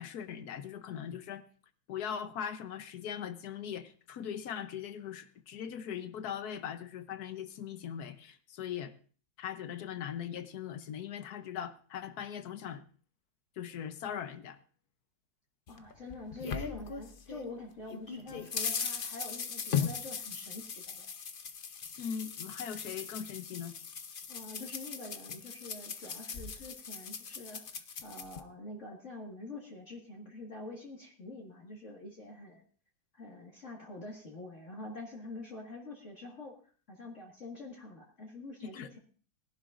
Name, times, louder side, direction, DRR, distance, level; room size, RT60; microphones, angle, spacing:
voice 1, 0.0-1.4 1.9-8.9 9.4-12.8 13.6-14.6 22.0-23.7 38.7-38.9, left 8 dB, 60° left, 11 dB, 1.2 m, -40 dB
sound 1, 15.7-17.5 17.9-28.4, left 6 dB, 85° left, 0.4 m, -39 dB
voice 2, 15.7-21.1 24.3-32.6 33.1-36.5 36.9-39.0, left 2 dB, 40° left, -2 dB, 2.1 m, -46 dB
21.0 x 11.5 x 2.5 m, 0.42 s
omnidirectional pair, 2.1 m